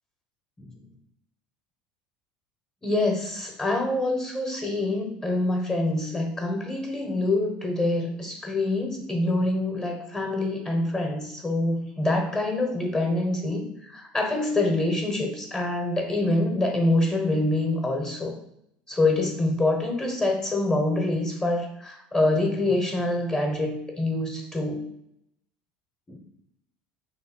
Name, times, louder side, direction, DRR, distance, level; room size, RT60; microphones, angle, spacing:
voice 1, 2.8-18.4 18.9-24.8 26.1-26.2, left 2 dB, 20° left, 2 dB, 0.9 m, -26 dB
3.1 x 2.7 x 4.3 m, 0.77 s
hypercardioid pair, 85°, 4 cm